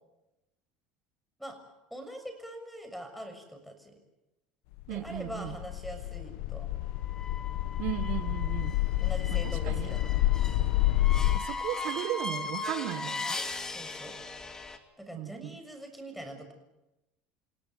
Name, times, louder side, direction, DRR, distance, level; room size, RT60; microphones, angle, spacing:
voice 1, 1.9-4.0 4.9-6.8 9.0-10.3 13.7-14.2 15.0-16.5, right 1 dB, ahead, 7 dB, 6.6 m, -43 dB
sound 1, 4.8-11.4, left 15 dB, 75° left, 1.4 m, -29 dB
voice 2, 4.9-5.6 7.8-8.8 9.3-10.0 11.3-13.4 15.1-15.5, right 15 dB, 70° right, 11 dB, 1.5 m, -36 dB
sound 2, 7.1-14.8, left 3 dB, 15° left, 2.7 m, -38 dB
28.5 x 17.0 x 9.4 m, 0.95 s
supercardioid pair, 115°, 3 cm